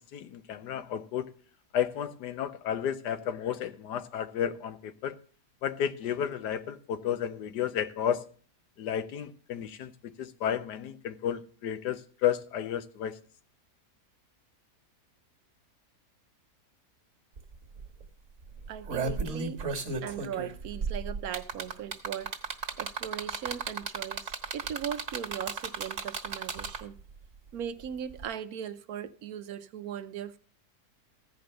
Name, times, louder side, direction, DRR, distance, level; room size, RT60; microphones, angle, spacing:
voice 1, 0.1-1.3 1.7-5.2 5.6-8.3 8.8-13.2, left 9 dB, 85° left, 1.4 m, -32 dB
sound 1, 17.4-17.5 17.8-18.0 18.6-27.0 28.2-28.3, right 4 dB, 50° right, 1.7 m, -34 dB
voice 2, 18.7-19.6 20.0-22.3 22.8-26.9 27.5-30.4, right 9 dB, 70° right, 1.1 m, -38 dB
15.0 x 5.2 x 6.4 m
omnidirectional pair, 1.7 m